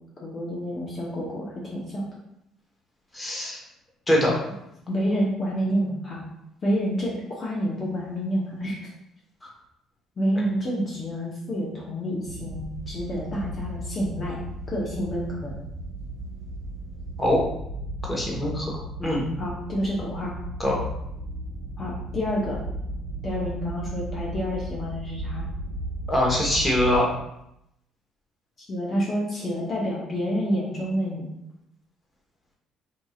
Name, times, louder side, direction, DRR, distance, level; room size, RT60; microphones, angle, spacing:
voice 1, 0.2-2.1 4.9-6.2 6.6-8.9 10.2-14.4 14.7-15.5 19.4-20.3 21.8-22.6 23.2-25.4 28.7-31.2, equal, 40° left, -4 dB, 0.9 m, -28 dB
voice 2, 3.1-3.6 4.1-4.3 9.4-9.5 17.2-17.4 18.1-18.7 19.0-19.2 20.6-20.8 26.1-27.1, left 1 dB, 20° left, -3 dB, 1.2 m, -23 dB
sound 1, 12.3-27.0, right 1 dB, 85° right, 0.4 m, -35 dB
4.5 x 2.7 x 2.4 m, 0.81 s
supercardioid pair, 75°, 0 cm